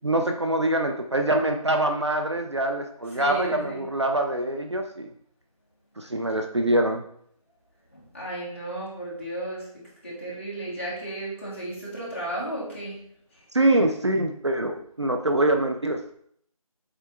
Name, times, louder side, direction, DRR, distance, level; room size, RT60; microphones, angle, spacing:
voice 1, 0.0-5.1 6.0-7.0 13.5-16.1, right 1 dB, 50° right, 4 dB, 0.6 m, -24 dB
voice 2, 3.2-3.8 7.9-9.7 10.0-13.0, right 1 dB, 20° left, -8 dB, 1.7 m, -34 dB
7.6 x 3.4 x 4.5 m, 0.65 s
figure-of-eight pair, 175°, 19 cm